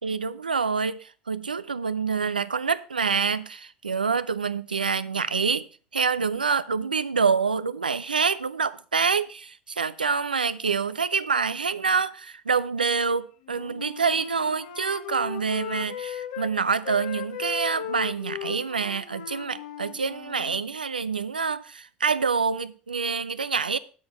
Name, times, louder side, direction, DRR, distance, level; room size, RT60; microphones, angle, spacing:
voice 1, 0.0-5.7 5.9-23.8, right 5 dB, 90° right, 0.5 m, -26 dB
Wind instrument woodwind instrument, 13.4-16.5 16.8-20.6, left 10 dB, 70° left, 1.0 m, -37 dB
10.0 x 6.3 x 5.6 m
figure-of-eight pair, 65°, 5 cm